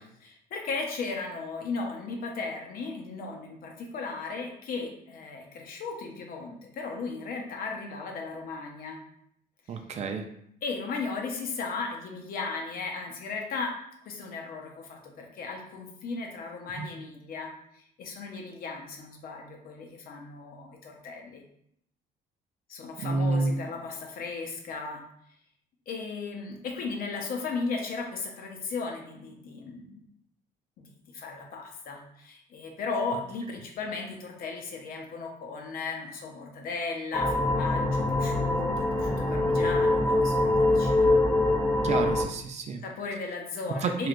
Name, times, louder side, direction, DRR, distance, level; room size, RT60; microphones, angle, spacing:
voice 1, 0.2-9.0 9.7-9.8 10.6-13.7 14.0-21.4 22.7-25.0 25.9-30.1 30.8-41.1 42.8-44.1, left 4 dB, 60° left, 1 dB, 0.7 m, -36 dB
voice 2, 9.7-10.2 16.8-16.9 23.0-23.5 41.8-42.8 43.8-44.1, right 3 dB, 40° right, 5 dB, 0.4 m, -29 dB
sound 1, 37.1-42.2, left 2 dB, 15° left, 0.5 m, -24 dB
3.1 x 3.1 x 2.5 m, 0.72 s
cardioid pair, 110°, 17 cm